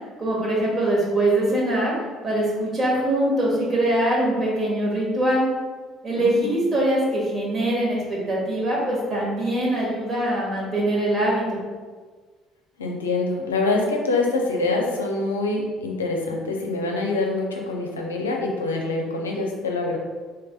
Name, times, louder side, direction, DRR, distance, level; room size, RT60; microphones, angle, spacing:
voice 1, 0.2-1.9 2.2-5.4 6.0-11.6, right 1 dB, 40° right, -4 dB, 1.5 m, -23 dB
voice 2, 6.2-6.6 12.8-20.0, left 3 dB, 85° left, 0 dB, 0.5 m, -25 dB
4.5 x 3.3 x 2.3 m, 1.4 s
figure-of-eight pair, 55°, 0 cm